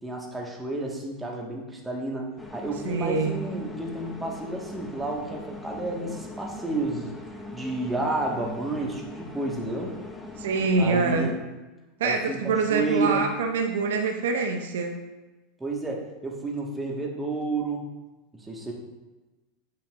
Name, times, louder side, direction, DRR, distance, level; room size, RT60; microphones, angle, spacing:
voice 1, 0.0-7.1 7.5-9.9 10.8-11.4 12.0-13.2 15.6-17.8 18.3-18.7, right 2 dB, 10° right, -2 dB, 1.7 m, -31 dB
sound 1, 2.4-11.3, left 2 dB, 10° left, 0.9 m, -41 dB
voice 2, 2.8-3.4 10.4-11.3 12.0-15.0, right 4 dB, 70° right, 4 dB, 0.7 m, -25 dB
9.1 x 5.2 x 2.6 m, 1.1 s
hypercardioid pair, 85°, 0 cm